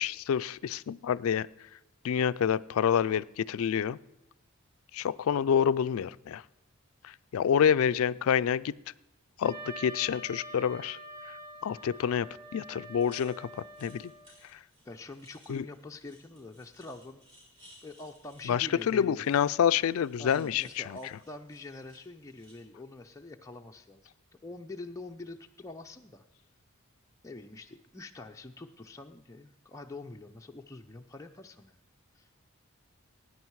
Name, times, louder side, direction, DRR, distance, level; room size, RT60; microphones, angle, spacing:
voice 1, 0.0-1.5 2.0-4.0 4.9-6.4 7.0-8.7 9.4-11.0 11.6-12.3 12.5-14.1 14.5-14.6 15.5-15.6 18.5-21.0, left 8 dB, 70° left, 17 dB, 0.3 m, -28 dB
Wind instrument woodwind instrument, 9.4-14.3, right 1 dB, 45° right, 3.9 m, -46 dB
sound 1, 13.0-22.5, equal, 25° right, 6.0 m, -60 dB
voice 2, 14.8-17.2 17.8-19.2 20.2-24.1 24.4-26.2 27.2-31.8 32.1-32.3, left 2 dB, 15° left, 2 dB, 0.5 m, -45 dB
16.5 x 9.7 x 4.7 m, 0.89 s
head